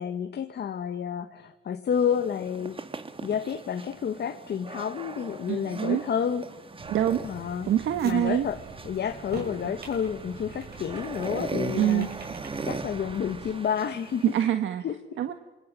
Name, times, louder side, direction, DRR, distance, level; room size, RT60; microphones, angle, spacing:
voice 1, 0.0-2.8 3.2-6.5 7.2-7.7 8.0-12.1 12.6-14.2 14.8-15.2, left 8 dB, 55° left, 7 dB, 1.6 m, -30 dB
sound 1, 1.9-14.5, right 4 dB, 25° right, 1.7 m, -39 dB
voice 2, 5.5-6.0 6.9-7.3 7.7-8.5 11.8-12.2 14.3-14.8 15.2-15.3, right 11 dB, 75° right, 8 dB, 1.5 m, -25 dB
sound 2, 6.8-13.5, right 4 dB, 55° right, 6.8 m, -44 dB
27.0 x 24.5 x 7.7 m, 1.1 s
cardioid pair, 90°, 20 cm